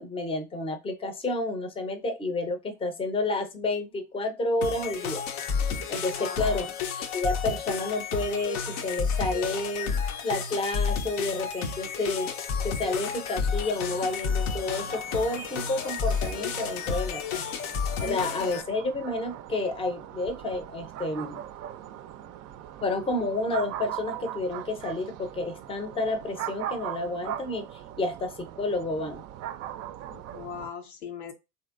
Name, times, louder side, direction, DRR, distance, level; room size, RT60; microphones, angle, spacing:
voice 1, 0.0-5.2 5.9-6.7 7.1-9.9 10.2-12.3 12.6-17.4 18.0-21.4 22.8-27.6 28.0-29.2, left 2 dB, 15° left, 0.6 m, -30 dB
sound 1, 4.6-18.6, left 6 dB, 55° left, 0.7 m, -31 dB
voice 2, 6.2-6.7 18.0-18.5 30.1-31.3, left 6 dB, 80° left, 0.9 m, -39 dB
sound 2, 13.5-30.7, right 11 dB, 40° right, 0.4 m, -41 dB
3.0 x 2.7 x 2.4 m
hypercardioid pair, 75°, 44 cm